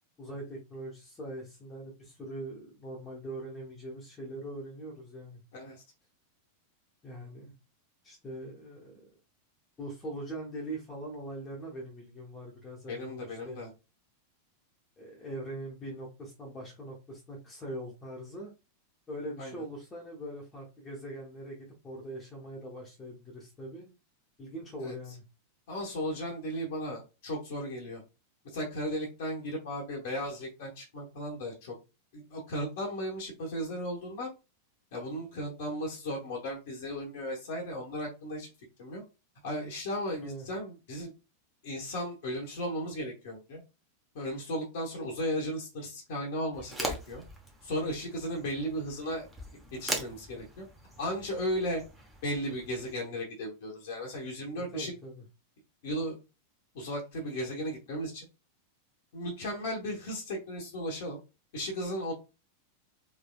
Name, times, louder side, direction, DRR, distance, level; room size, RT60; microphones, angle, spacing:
voice 1, 0.2-5.4 7.0-7.5 8.0-8.9 9.8-13.6 15.0-18.5 19.1-23.9 24.4-25.2 40.2-40.5 54.5-55.2, right 1 dB, 20° left, -3 dB, 1.0 m, -42 dB
voice 2, 5.5-5.8 12.9-13.7 19.4-19.6 24.8-24.9 25.7-28.0 28.4-31.7 32.1-34.3 34.9-38.5 38.8-39.0 39.4-41.1 41.6-43.6 44.1-47.2 47.6-49.3 49.8-50.6 51.0-51.8 52.2-54.9 55.8-56.2 56.7-58.3 59.1-61.2 61.5-62.1, equal, 55° left, -2 dB, 1.0 m, -35 dB
sound 1, 46.5-52.9, right 1 dB, 5° right, 1.0 m, -41 dB
3.4 x 3.4 x 2.2 m, 0.29 s
figure-of-eight pair, 90°, 0 cm